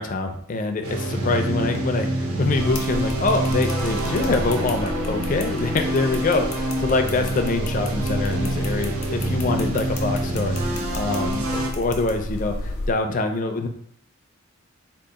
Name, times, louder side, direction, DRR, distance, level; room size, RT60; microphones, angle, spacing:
voice 1, 0.0-13.7, left 3 dB, 40° left, 6 dB, 0.4 m, -25 dB
sound 1, 0.8-11.7, right 1 dB, 80° right, 0.7 m, -26 dB
sound 2, 2.6-12.9, left 1 dB, 80° left, 0.6 m, -33 dB
Wind instrument woodwind instrument, 4.8-8.9, equal, 35° right, 0.7 m, -42 dB
3.8 x 2.4 x 3.6 m, 0.63 s
head